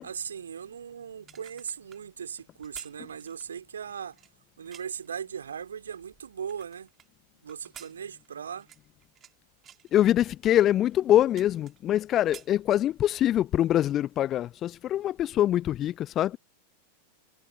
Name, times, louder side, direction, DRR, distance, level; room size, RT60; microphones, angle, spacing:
voice 1, 0.0-4.2 4.6-6.9 7.4-8.7, right 7 dB, 70° right, 2.8 m, -38 dB
sound 1, 1.1-5.1 5.7-7.1 7.5-9.3 9.6-9.9 10.5-10.6 10.9-12.0 12.2-13.2 13.6-13.7, right 9 dB, 25° right, 2.6 m, -52 dB
voice 2, 9.9-16.4, left 12 dB, 30° left, 0.4 m, -24 dB
figure-of-eight pair, 90°, 0 cm